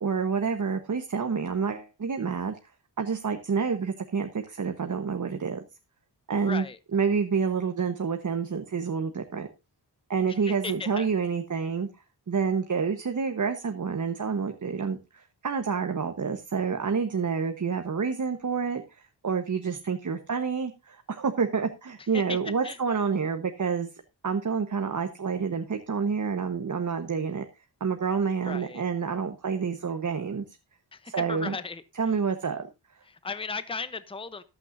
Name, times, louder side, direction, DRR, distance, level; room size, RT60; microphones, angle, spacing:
voice 1, 0.0-2.6 3.0-5.6 6.3-6.6 6.9-9.5 10.1-11.9 12.3-23.9 24.2-27.4 27.8-30.4 31.1-31.6 32.0-32.7, right 5 dB, 45° right, 6 dB, 1.2 m, -28 dB
voice 2, 6.4-6.8 10.3-11.1 22.1-22.4 22.6-22.8 28.4-28.8 30.9-32.1 33.0-34.4, left 4 dB, 15° left, 13 dB, 0.8 m, -36 dB
14.5 x 11.5 x 2.6 m, 0.25 s
wide cardioid pair, 115°, 41 cm